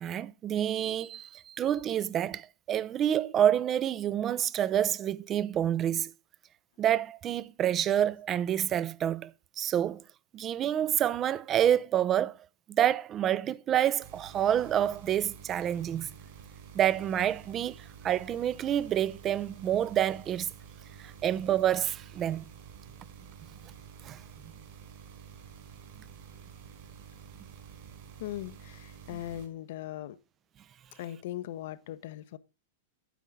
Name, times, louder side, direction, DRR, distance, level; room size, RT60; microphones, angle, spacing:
voice 1, 0.0-6.1 6.8-9.3 9.6-10.0 10.3-12.4 12.7-16.1 16.7-20.5 21.0-22.5 24.0-24.2, right 10 dB, 30° right, 0.5 m, -28 dB
sound 1, 14.0-29.5, right 7 dB, 55° right, 3.8 m, -50 dB
voice 2, 28.2-30.2 31.0-32.4, left 13 dB, 65° left, 0.8 m, -39 dB
9.3 x 8.3 x 3.7 m
hypercardioid pair, 125°, 0 cm